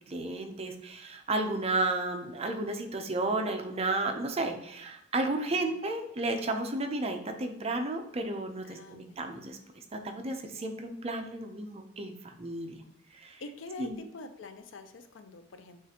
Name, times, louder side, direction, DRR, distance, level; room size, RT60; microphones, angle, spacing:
voice 1, 0.1-9.6 9.9-12.8 13.1-13.4 13.8-14.0, right 2 dB, 30° right, 5 dB, 0.5 m, -33 dB
voice 2, 8.6-9.2 13.4-15.8, left 3 dB, 70° left, 9 dB, 0.5 m, -45 dB
7.2 x 2.5 x 2.8 m, 0.83 s
head